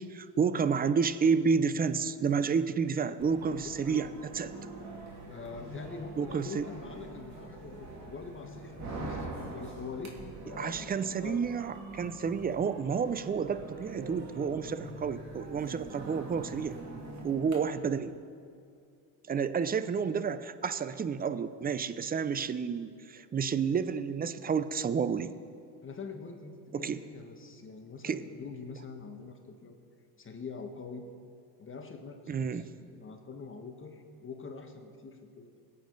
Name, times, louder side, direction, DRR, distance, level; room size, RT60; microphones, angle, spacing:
voice 1, 0.0-4.5 6.2-6.7 10.6-16.8 17.2-18.1 19.3-25.3 26.7-27.0 28.0-28.2 32.3-32.6, right 6 dB, 20° right, 13 dB, 0.5 m, -30 dB
sound 1, 3.2-17.5, right 2 dB, 35° right, 2.8 m, -44 dB
voice 2, 3.6-4.1 5.2-11.4 22.0-22.1 25.8-29.8 30.2-31.1 31.6-35.6, left 4 dB, 25° left, 4 dB, 1.4 m, -44 dB
20.5 x 8.6 x 4.0 m, 2.4 s
supercardioid pair, 90°, 47 cm